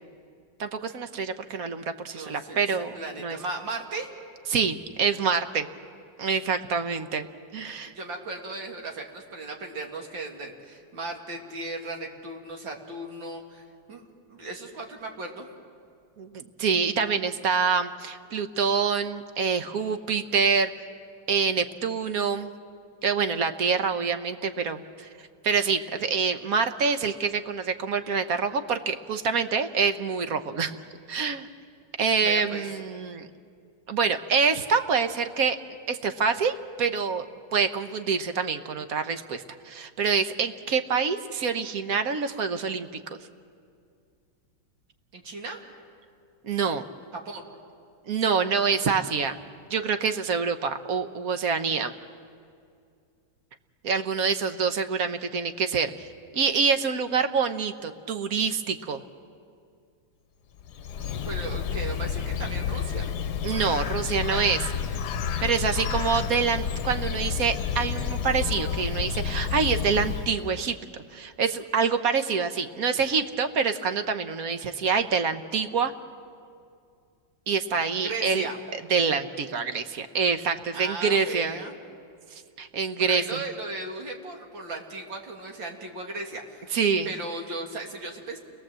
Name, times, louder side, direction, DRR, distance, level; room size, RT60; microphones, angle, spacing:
voice 1, 0.6-3.4 4.5-5.7 6.2-7.3 7.5-7.9 16.2-20.7 21.3-22.5 23.0-25.1 25.4-30.8 31.1-31.5 32.0-33.3 33.9-35.6 35.9-43.0 46.4-46.8 48.1-49.4 49.7-51.9 53.8-56.1 56.3-59.0 63.4-64.6 65.4-70.8 71.1-75.9 77.5-78.5 78.9-81.6 82.6-83.4 86.7-87.1, right 5 dB, 55° right, 8 dB, 1.3 m, -26 dB
voice 2, 2.1-2.7 2.9-4.1 7.8-14.0 14.3-15.5 32.2-32.6 45.1-45.6 46.6-46.8 47.1-47.4 61.2-63.1 64.3-64.4 78.0-78.6 80.7-81.8 83.0-86.7 87.0-88.4, right 2 dB, 80° right, 1 dB, 3.0 m, -36 dB
Bird, 60.6-70.6, left 7 dB, 65° left, 1.3 m, -30 dB
29.5 x 21.0 x 7.6 m, 2.3 s
omnidirectional pair, 2.0 m